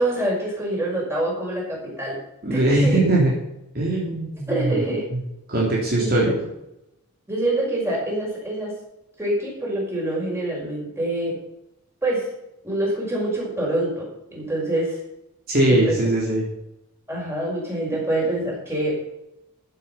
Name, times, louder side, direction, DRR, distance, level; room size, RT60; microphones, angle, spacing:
voice 1, 0.0-2.2 2.5-3.0 4.5-5.0 6.0-6.1 7.3-8.7 9.2-11.3 12.0-12.3 12.6-15.0 15.7-16.0 17.1-19.0, right 1 dB, 10° right, -4 dB, 5.8 m, -25 dB
voice 2, 2.4-3.3 3.7-4.8 5.5-6.3 15.5-16.5, right 1 dB, 45° right, -4 dB, 3.3 m, -20 dB
14.5 x 8.0 x 5.8 m, 0.86 s
head